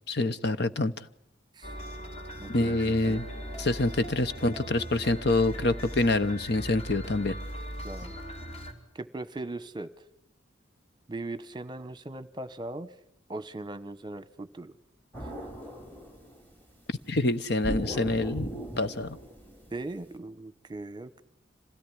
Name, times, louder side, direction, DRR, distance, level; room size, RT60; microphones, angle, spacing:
voice 1, 0.1-1.1 2.5-3.3 3.6-7.3 17.1-18.5 18.8-19.2, left 2 dB, 55° left, 12 dB, 1.0 m, -26 dB
sound 1, 1.6-8.7, equal, 35° left, 3.4 m, -39 dB
voice 2, 2.4-3.2 7.8-8.2 8.9-9.9 11.1-12.9 13.3-14.7 19.7-21.2, right 2 dB, 25° right, 14 dB, 1.1 m, -39 dB
sound 2, 15.1-16.6 17.6-20.1, equal, 10° left, 3.3 m, -38 dB
27.0 x 17.0 x 10.0 m, 0.80 s
head